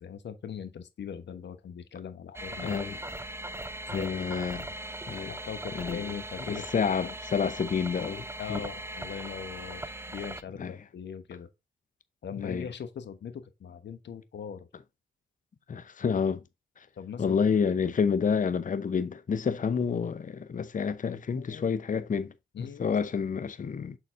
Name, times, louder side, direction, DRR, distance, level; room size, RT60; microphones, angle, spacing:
voice 1, 0.0-2.8 3.9-4.1 4.5-4.6 5.3-7.1 8.4-11.5 12.2-14.7 16.9-17.4 21.3-21.7 22.5-22.9, left 7 dB, 65° left, 1.3 m, -40 dB
sound 1, 2.3-10.4, right 1 dB, 15° right, 0.6 m, -39 dB
voice 2, 2.6-3.0 3.9-4.7 5.1-5.3 5.7-6.1 6.5-8.2 8.5-8.6 10.6-10.7 12.4-12.7 15.7-16.4 17.2-24.0, left 6 dB, 45° left, 0.8 m, -29 dB
6.6 x 4.0 x 3.9 m
cardioid pair, 60°, 19 cm